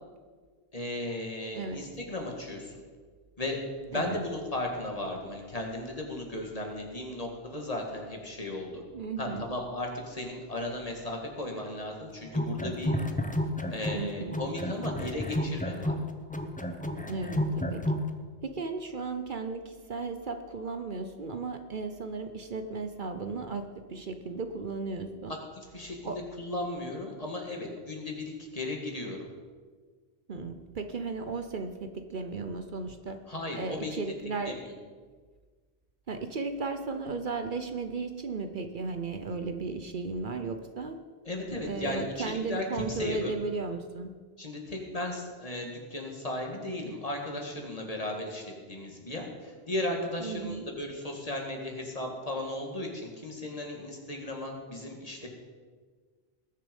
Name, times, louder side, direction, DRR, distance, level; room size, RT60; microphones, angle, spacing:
voice 1, 0.7-2.8 3.4-3.6 3.9-8.8 9.2-12.9 13.7-15.9 25.3-29.2 33.3-34.0 34.4-34.7 41.3-43.3 44.4-55.3, left 1 dB, 35° left, 1 dB, 2.1 m, -36 dB
voice 2, 8.9-9.5 13.9-14.4 17.1-18.0 18.4-25.3 26.0-26.2 30.3-33.2 33.6-34.6 36.1-41.0 41.7-44.1 50.2-50.7, right 4 dB, 55° right, 8 dB, 0.9 m, -35 dB
sound 1, 12.2-14.0 14.3-18.1, left 1 dB, 10° left, 0.8 m, -31 dB
20.0 x 6.9 x 5.3 m, 1.5 s
omnidirectional pair, 1.0 m